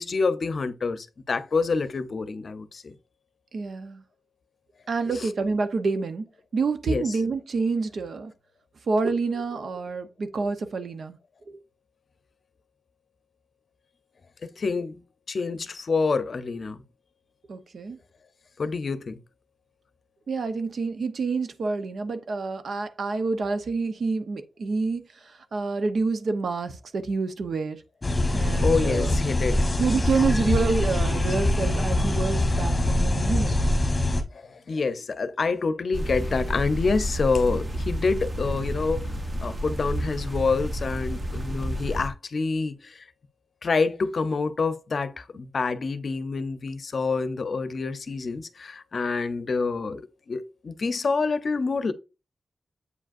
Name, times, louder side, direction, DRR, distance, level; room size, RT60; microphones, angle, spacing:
voice 1, 0.0-2.9 5.1-5.3 6.9-7.0 14.4-15.0 15.3-16.8 18.6-19.2 28.2-29.6 34.3-39.1 39.4-43.0 43.6-51.9, left 4 dB, 55° left, 0.6 m, -27 dB
voice 2, 3.5-4.0 4.9-8.3 8.9-11.2 11.5-11.6 17.5-18.0 20.3-27.8 28.3-29.2 29.8-33.6, right 4 dB, 70° right, 0.8 m, -28 dB
sound 1, 28.0-34.2, left 1 dB, 20° left, 1.2 m, -23 dB
sound 2, 35.9-42.1, equal, 30° right, 1.1 m, -30 dB
8.1 x 5.0 x 2.6 m
wide cardioid pair, 160°, 0 cm